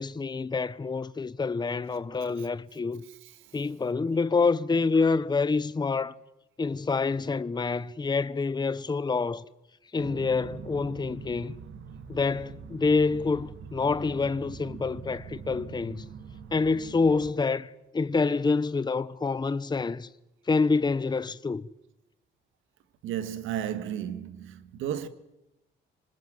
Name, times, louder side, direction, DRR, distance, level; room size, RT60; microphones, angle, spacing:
voice 1, 0.0-3.0 3.5-6.2 6.6-9.4 9.9-11.6 12.1-16.0 16.5-20.1 20.5-21.7, left 4 dB, 20° left, 0.8 m, -27 dB
sound 1, 10.0-17.3, right 6 dB, 75° right, 1.8 m, -43 dB
voice 2, 23.0-25.1, right 10 dB, 90° right, 1.6 m, -33 dB
26.0 x 20.5 x 7.8 m
cardioid pair, 90°, 20 cm